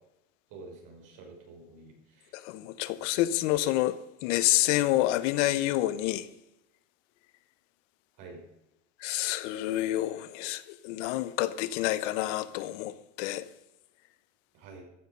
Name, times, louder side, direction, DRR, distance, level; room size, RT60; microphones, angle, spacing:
voice 1, 0.5-2.3 8.2-8.4 14.5-14.8, right 3 dB, 55° right, 6.1 m, -48 dB
voice 2, 2.3-6.3 9.0-13.5, left 15 dB, 70° left, 1.1 m, -28 dB
14.5 x 10.5 x 5.4 m
supercardioid pair, 130°, 38 cm